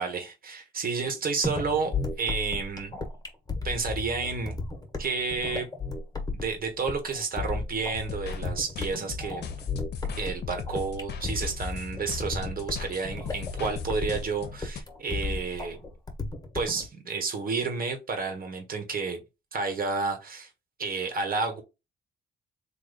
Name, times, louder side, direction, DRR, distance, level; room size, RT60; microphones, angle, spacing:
voice 1, 0.0-3.0 3.6-4.5 5.0-5.7 6.3-9.4 10.1-15.8 16.5-19.2 19.5-20.5 20.8-21.6, right 4 dB, 45° right, 1.5 m, -31 dB
sound 1, 1.4-16.9, left 3 dB, 20° left, 1.3 m, -34 dB
sound 2, 7.9-14.8, left 6 dB, 55° left, 0.7 m, -38 dB
3.4 x 2.6 x 4.0 m
cardioid pair, 90°, 20 cm